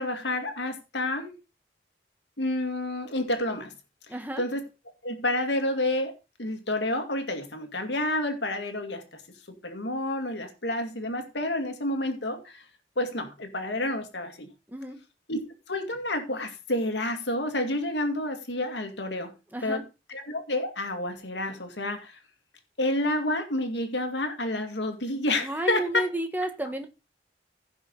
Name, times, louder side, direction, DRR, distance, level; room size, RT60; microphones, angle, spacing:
voice 1, 0.0-1.3 2.4-3.7 4.4-4.6 5.0-6.1 6.4-9.2 9.5-12.7 13.0-14.5 15.3-15.4 15.7-19.3 19.6-19.8 20.1-22.2 22.8-26.0, left 1 dB, 80° left, 6 dB, 2.3 m, -29 dB
voice 2, 4.1-4.4 14.7-15.0 19.5-19.8 25.4-26.9, right 1 dB, 10° right, 6 dB, 1.4 m, -31 dB
16.0 x 5.8 x 3.9 m, 0.28 s
head